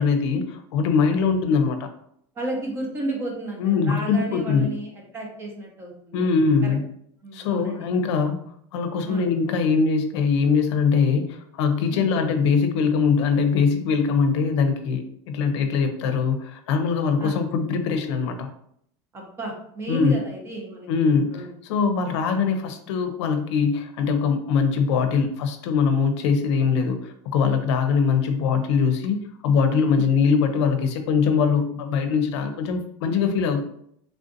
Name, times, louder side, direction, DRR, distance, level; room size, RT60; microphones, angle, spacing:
voice 1, 0.0-1.9 3.6-4.7 6.1-6.8 7.3-18.5 19.9-20.1 20.9-33.6, left 5 dB, 85° left, 6 dB, 0.5 m, -22 dB
voice 2, 2.3-6.7 7.2-7.9 9.0-9.3 11.9-12.1 17.2-17.4 19.1-21.5 30.0-30.1, right 2 dB, 20° right, 0 dB, 0.6 m, -33 dB
3.4 x 2.5 x 2.5 m, 0.69 s
supercardioid pair, 170°, 14 cm